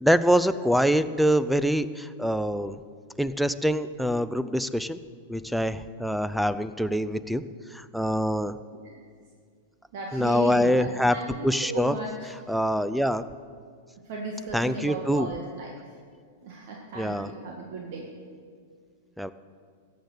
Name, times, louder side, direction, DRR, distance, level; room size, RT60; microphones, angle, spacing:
voice 1, 0.0-2.8 3.2-5.0 5.3-7.4 7.7-8.6 10.1-11.2 11.4-12.0 12.5-13.2 14.5-15.3 16.9-17.3 19.2-19.3, equal, ahead, 14 dB, 0.5 m, -24 dB
voice 2, 9.9-12.3 14.1-15.7 16.4-18.1, right 3 dB, 60° right, -1 dB, 1.9 m, -35 dB
14.0 x 8.1 x 8.3 m, 2.1 s
hypercardioid pair, 120°, 0 cm